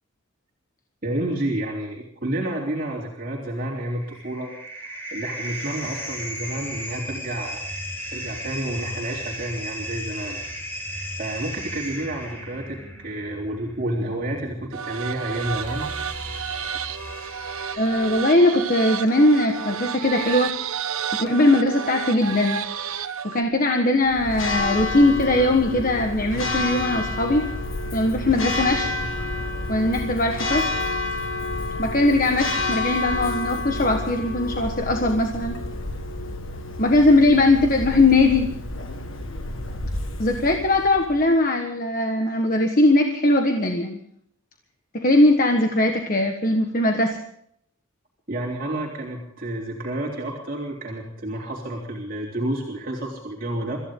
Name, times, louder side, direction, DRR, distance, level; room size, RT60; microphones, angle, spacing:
voice 1, 1.0-4.5 4.8-7.6 8.1-10.4 11.2-15.9 48.3-53.8, right 1 dB, 40° right, -3 dB, 3.5 m, -30 dB
sound 1, 3.6-18.2, equal, 10° left, 4.7 m, -36 dB
sound 2, 14.7-23.4, right 8 dB, 85° right, 1.0 m, -31 dB
voice 2, 17.8-20.5 21.1-22.6 23.2-27.5 27.9-28.9 29.7-30.7 31.8-35.6 36.8-38.5 40.2-44.0 44.9-47.2, left 2 dB, 40° left, 4 dB, 1.4 m, -20 dB
Church bell, 24.0-41.3, left 2 dB, 70° left, 1.7 m, -29 dB
25.5 x 15.0 x 3.8 m, 0.68 s
head